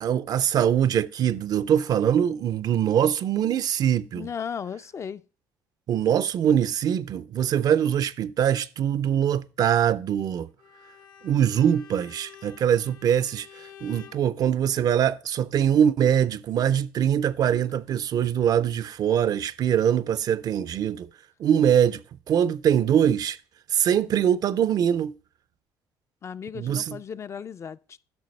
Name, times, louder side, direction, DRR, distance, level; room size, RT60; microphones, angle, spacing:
voice 1, 0.0-4.3 5.9-10.5 11.2-21.1 21.4-22.0 22.3-23.4 23.7-25.2 26.5-27.0, right 9 dB, 50° right, 0.4 m, -23 dB
voice 2, 4.1-5.2 26.2-28.0, left 7 dB, 35° left, 0.3 m, -35 dB
Bowed string instrument, 10.6-14.3, left 9 dB, 50° left, 0.8 m, -49 dB
10.5 x 6.3 x 3.2 m
supercardioid pair, 90°, 8 cm